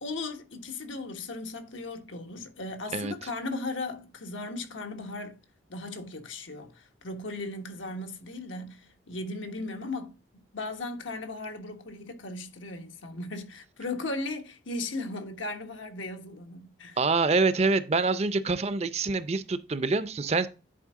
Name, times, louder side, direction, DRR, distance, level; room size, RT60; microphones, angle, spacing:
voice 1, 0.0-5.4 5.7-17.0, left 2 dB, 85° left, 1.3 m, -37 dB
voice 2, 17.0-20.5, right 3 dB, 35° right, 0.5 m, -26 dB
10.0 x 4.4 x 3.6 m
head